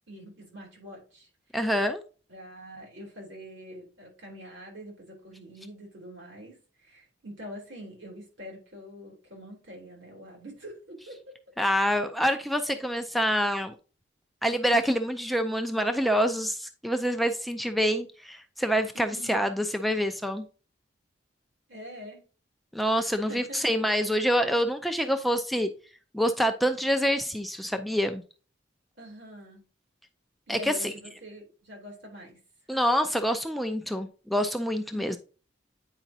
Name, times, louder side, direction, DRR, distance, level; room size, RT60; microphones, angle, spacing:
voice 1, 0.1-1.6 2.3-11.2 18.9-19.4 21.7-22.2 23.1-23.8 29.0-29.7 30.5-32.4 34.9-35.2, equal, 75° right, 3.3 m, -45 dB
voice 2, 1.5-2.0 11.6-13.7 14.4-20.4 22.7-25.7 26.1-28.2 30.5-30.9 32.7-35.2, equal, ahead, 0.4 m, -26 dB
9.0 x 4.9 x 2.7 m
head